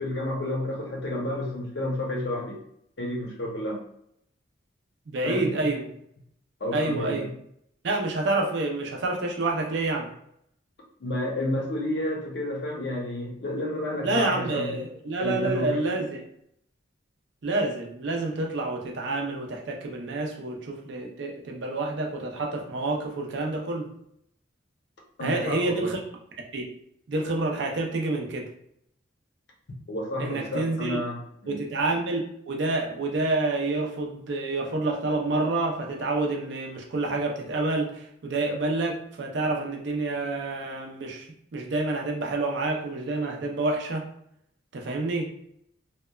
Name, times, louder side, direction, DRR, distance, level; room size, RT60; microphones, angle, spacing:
voice 1, 0.0-2.6 3.0-3.8 5.2-5.5 6.6-7.3 11.0-14.8 15.2-15.8 25.2-25.9 29.9-31.6, left 1 dB, 60° left, -1 dB, 0.7 m, -30 dB
voice 2, 5.1-5.9 6.7-7.3 7.8-10.1 14.0-16.3 17.4-23.9 25.2-26.0 26.5-26.6 27.1-28.5 30.2-31.0 31.5-41.3 41.5-44.1 44.7-45.3, right 2 dB, 60° right, 1 dB, 0.5 m, -28 dB
2.8 x 2.1 x 2.3 m, 0.71 s
head